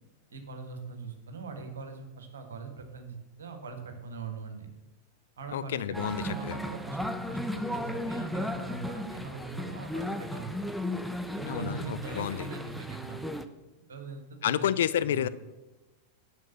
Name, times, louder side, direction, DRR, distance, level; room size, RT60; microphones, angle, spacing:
voice 1, 0.3-4.7 5.4-10.7 11.4-13.2 13.9-14.7 15.0-15.3, right 4 dB, 65° right, 6 dB, 1.6 m, -41 dB
voice 2, 5.5-6.6 11.4-12.5 14.4-15.3, left 10 dB, 60° left, 14 dB, 0.4 m, -30 dB
sound 1, 5.9-13.4, left 1 dB, ahead, 0.6 m, -35 dB
9.4 x 6.4 x 6.6 m, 1.1 s
figure-of-eight pair, 90°, 0 cm